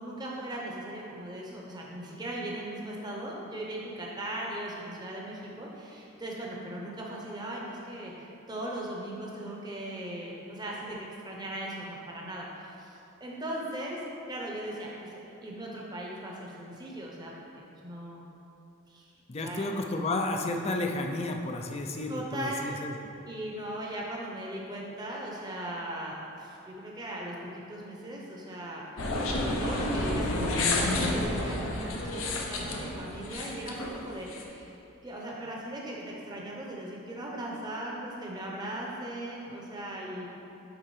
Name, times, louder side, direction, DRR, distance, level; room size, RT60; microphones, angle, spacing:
voice 1, 0.0-11.0 11.2-14.0 14.3-17.5 17.8-18.3 18.9-19.0 19.4-19.6 22.1-22.6 23.3-28.8 29.4-40.3, right 1 dB, 20° right, -3 dB, 0.8 m, -38 dB
voice 2, 19.3-22.9, left 2 dB, 30° left, 3 dB, 0.4 m, -32 dB
sound 1, 29.0-34.4, left 2 dB, 80° left, 0.7 m, -30 dB
10.0 x 3.7 x 3.2 m, 2.9 s
head